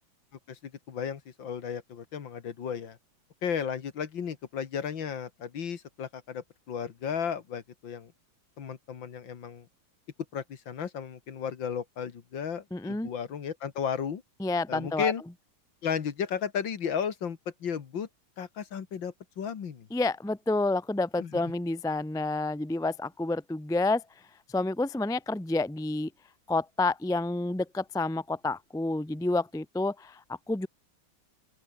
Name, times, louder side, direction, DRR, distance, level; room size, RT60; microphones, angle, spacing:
voice 1, 0.5-3.0 3.4-8.1 8.6-9.7 10.3-14.2 14.7-15.2 15.8-18.1 18.4-19.9 21.2-21.4, left 7 dB, 70° left, 2.5 m, -34 dB
voice 2, 12.7-13.1 14.4-15.1 19.9-24.0 24.5-26.1 26.5-30.7, left 2 dB, 5° left, 0.7 m, -29 dB
open air
omnidirectional pair, 2.2 m